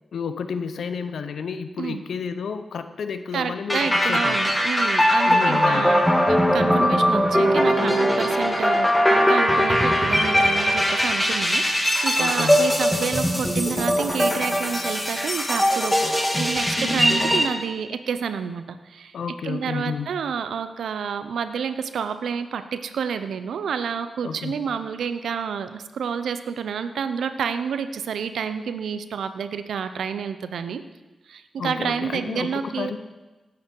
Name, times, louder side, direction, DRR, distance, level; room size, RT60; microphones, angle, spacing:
voice 1, 0.1-4.5 5.2-6.0 12.2-12.7 19.1-20.1 24.2-24.6 31.6-33.0, left 6 dB, 80° left, 10 dB, 0.9 m, -31 dB
voice 2, 3.3-19.1 19.4-30.8 31.3-32.9, right 6 dB, 85° right, 11 dB, 0.8 m, -29 dB
sound 1, 3.7-17.4, equal, 10° left, 2.7 m, -20 dB
18.0 x 8.7 x 4.7 m, 1.2 s
cardioid pair, 50°, 0 cm